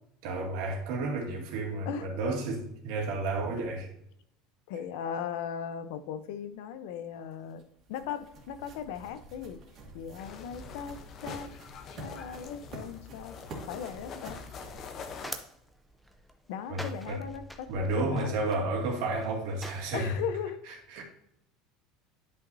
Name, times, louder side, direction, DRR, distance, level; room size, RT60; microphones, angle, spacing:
voice 1, 0.2-3.9 16.7-17.2 17.7-20.1 20.7-21.0, right 2 dB, 70° right, 0 dB, 2.2 m, -32 dB
voice 2, 4.7-9.6 9.9-11.6 12.0-13.4 13.7-14.4 16.5-18.4 19.9-20.6, left 8 dB, 75° left, 11 dB, 0.7 m, -38 dB
sound 1, 7.1-15.7, right 2 dB, 35° right, 2.1 m, -48 dB
sound 2, 10.2-15.3, left 5 dB, 35° left, 0.8 m, -44 dB
sound 3, 14.6-20.2, equal, ahead, 0.6 m, -46 dB
10.0 x 5.8 x 2.7 m, 0.73 s
cardioid pair, 160°, 0 cm